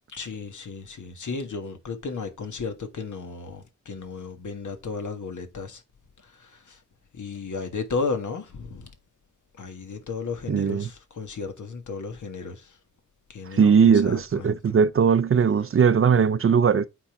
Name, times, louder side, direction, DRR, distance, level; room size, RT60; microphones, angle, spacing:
voice 1, 0.1-5.8 6.2-6.8 7.1-8.9 9.6-12.8 13.3-14.6, left 4 dB, 75° left, 1.6 m, -34 dB
voice 2, 10.5-10.9 13.5-16.9, right 6 dB, 45° right, 0.5 m, -19 dB
8.4 x 3.8 x 4.7 m
wide cardioid pair, 105°, 30 cm